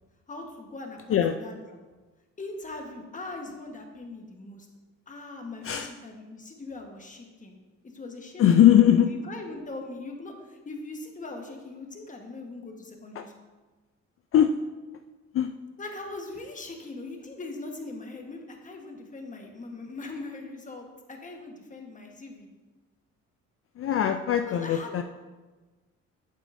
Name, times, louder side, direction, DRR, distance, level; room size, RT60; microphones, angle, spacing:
voice 1, 0.3-1.8 2.4-4.7 5.1-7.5 7.8-13.3 15.8-22.5 24.4-25.0, left 2 dB, 25° left, 2 dB, 1.3 m, -41 dB
voice 2, 8.4-9.1 13.2-13.3 14.3-14.6 15.3-15.5 23.8-25.0, left 10 dB, 50° left, 7 dB, 0.4 m, -20 dB
8.2 x 7.4 x 2.6 m, 1.3 s
cardioid pair, 90°, 30 cm